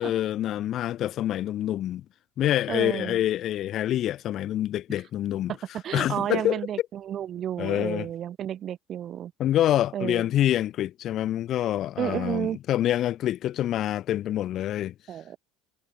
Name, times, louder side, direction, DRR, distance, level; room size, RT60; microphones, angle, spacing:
voice 1, 0.0-2.0 2.4-5.5 5.9-6.6 7.6-8.1 9.4-14.9, left 12 dB, 45° left, 1.1 m, -26 dB
voice 2, 2.7-3.2 5.5-9.3 9.9-10.2 12.0-12.6 15.1-15.4, right 10 dB, 40° right, 2.4 m, -31 dB
cardioid pair, 135°, 0 cm